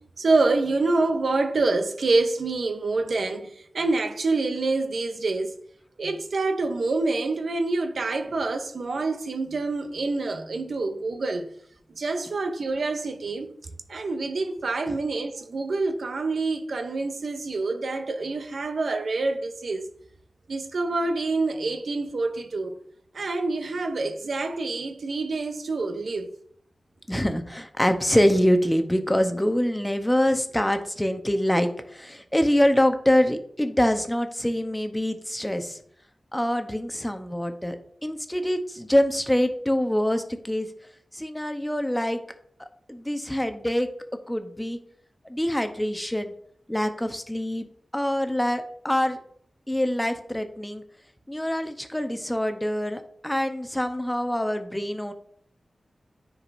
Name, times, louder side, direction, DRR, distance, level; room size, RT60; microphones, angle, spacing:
voice 1, 0.2-5.6 6.0-11.5 12.0-13.5 13.9-19.9 20.5-22.8 23.1-26.3, right 3 dB, 80° right, 0.7 m, -26 dB
voice 2, 27.1-35.8 36.3-37.8 38.0-40.7 41.1-42.2 42.6-43.9 44.3-44.8 45.3-46.3 46.7-47.7 47.9-49.2 49.7-50.8 51.3-55.1, equal, 10° left, 0.8 m, -25 dB
9.5 x 4.8 x 2.6 m
cardioid pair, 45°, 0 cm